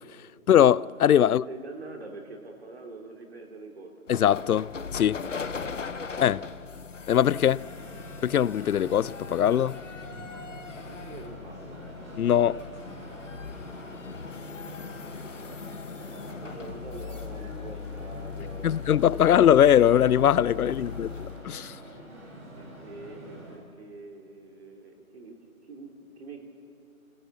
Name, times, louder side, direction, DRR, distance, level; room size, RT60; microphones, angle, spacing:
voice 1, 0.5-1.4 4.1-5.2 6.2-6.4 7.1-7.6 8.2-9.8 12.2-12.6 18.6-21.8, left 10 dB, 85° left, 0.5 m, -21 dB
voice 2, 1.2-4.0 5.6-5.7 10.9-11.8 16.5-19.3 20.7-21.0 21.8-22.0 22.6-26.5, right 3 dB, 45° right, 2.9 m, -45 dB
sound 1, 4.1-21.4, left 6 dB, 60° left, 1.0 m, -39 dB
sound 2, 7.3-23.6, right 1 dB, 20° right, 3.5 m, -45 dB
27.0 x 16.5 x 7.1 m
hypercardioid pair, 175°, 43 cm